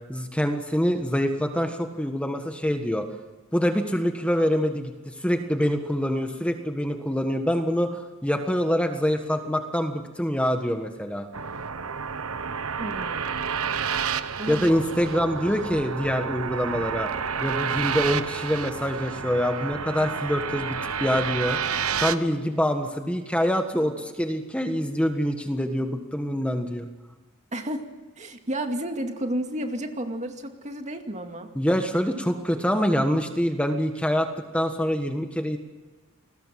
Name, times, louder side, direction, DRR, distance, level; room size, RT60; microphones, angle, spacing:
voice 1, 0.1-3.1 3.5-11.3 14.5-17.1 17.4-21.6 22.0-26.9 31.5-35.6, equal, 5° left, 5 dB, 1.6 m, -25 dB
sound 1, 11.3-22.1, right 6 dB, 85° right, 1.1 m, -30 dB
voice 2, 12.8-13.3 14.4-15.5 27.5-27.9 28.2-31.5, right 1 dB, 35° right, 5 dB, 2.3 m, -32 dB
28.5 x 20.5 x 7.7 m, 1.3 s
head